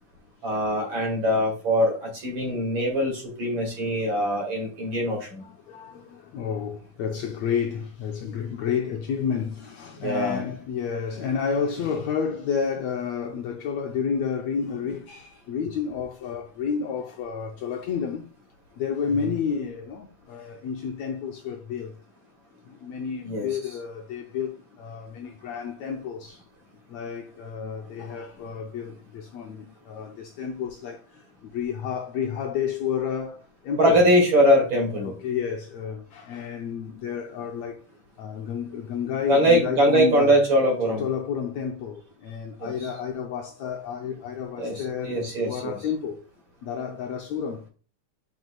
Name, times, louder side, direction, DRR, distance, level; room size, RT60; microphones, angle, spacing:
voice 1, 0.4-5.4 10.0-10.4 23.2-23.5 33.8-35.1 39.3-41.0 42.6-42.7 44.6-45.8, equal, 40° right, 2.6 m, -22 dB
voice 2, 5.4-18.3 18.8-21.9 22.6-26.4 26.9-34.0 35.0-37.8 38.2-40.4 40.9-46.2 46.6-47.6, left 7 dB, 80° left, 1.6 m, -30 dB
9.4 x 4.8 x 2.3 m
omnidirectional pair, 3.6 m